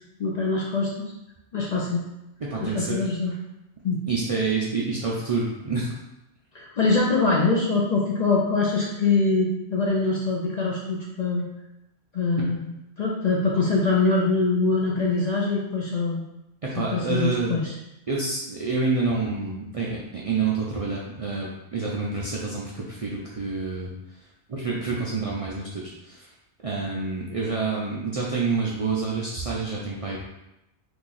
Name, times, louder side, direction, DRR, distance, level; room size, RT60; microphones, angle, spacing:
voice 1, 0.2-1.0 1.5-2.0 2.6-3.3 3.8-4.0 6.5-11.5 12.1-16.2 16.8-17.7, left 3 dB, 55° left, -3 dB, 0.5 m, -24 dB
voice 2, 2.4-3.0 4.1-5.9 16.6-17.6 18.1-23.9 24.5-26.3 26.6-30.3, right 4 dB, 55° right, -5 dB, 0.4 m, -28 dB
2.9 x 2.4 x 3.8 m, 0.90 s
omnidirectional pair, 1.1 m